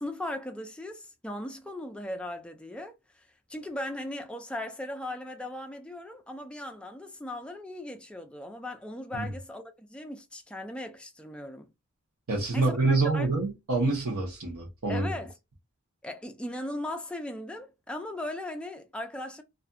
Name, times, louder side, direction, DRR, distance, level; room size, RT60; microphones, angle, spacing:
voice 1, 0.0-3.2 3.5-11.7 12.5-13.3 14.9-15.3 16.0-19.4, left 1 dB, 5° left, 0.3 m, -38 dB
voice 2, 12.3-15.1, right 3 dB, 80° right, 0.8 m, -26 dB
2.4 x 2.2 x 2.5 m
head